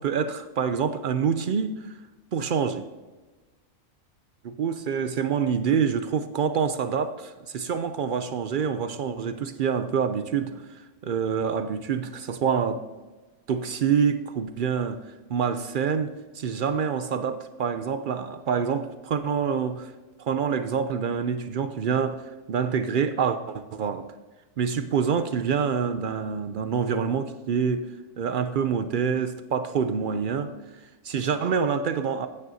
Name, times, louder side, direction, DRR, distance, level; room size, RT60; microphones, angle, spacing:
voice 1, 0.0-2.0 2.3-2.9 4.4-12.8 13.5-19.9 20.2-24.1 24.6-27.9 28.2-32.3, right 6 dB, 70° right, 0.4 m, -26 dB
15.0 x 9.1 x 2.7 m
omnidirectional pair, 1.4 m